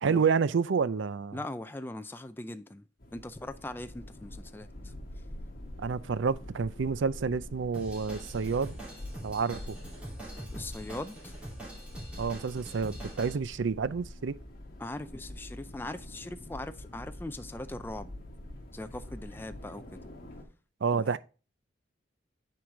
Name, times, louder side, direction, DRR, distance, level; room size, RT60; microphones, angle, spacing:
voice 1, 0.0-1.4 5.8-8.8 9.2-9.8 12.2-14.4 20.8-21.2, right 5 dB, 75° right, 0.5 m, -29 dB
voice 2, 1.3-2.8 3.1-4.9 10.5-11.3 14.8-18.1 18.7-20.0 20.9-21.2, left 1 dB, 10° left, 0.4 m, -40 dB
sound 1, 3.0-20.4, left 1 dB, 50° left, 2.1 m, -45 dB
Drum kit / Drum, 7.7-13.3, right 1 dB, 5° right, 2.7 m, -44 dB
9.4 x 4.8 x 3.8 m
head